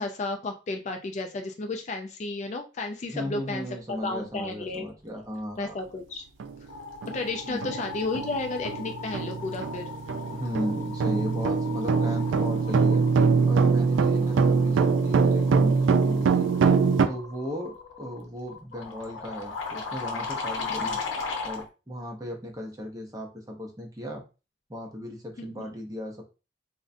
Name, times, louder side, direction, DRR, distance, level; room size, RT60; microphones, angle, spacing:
voice 1, 0.0-4.9 5.6-6.2 7.1-9.9 14.1-14.3 20.6-21.0 25.4-25.5, left 3 dB, 40° left, 5 dB, 0.3 m, -33 dB
voice 2, 3.1-5.8 7.4-7.7 10.3-13.0 13.5-16.5 17.1-21.0 21.4-24.2 24.7-26.2, left 1 dB, 20° right, 1 dB, 0.6 m, -36 dB
sound 1, 5.8-6.1 6.4-21.7, left 4 dB, 85° left, 0.7 m, -38 dB
sound 2, 6.4-6.5 7.0-7.2 7.6-17.1, right 5 dB, 80° right, 0.3 m, -23 dB
3.7 x 2.1 x 2.5 m, 0.31 s
head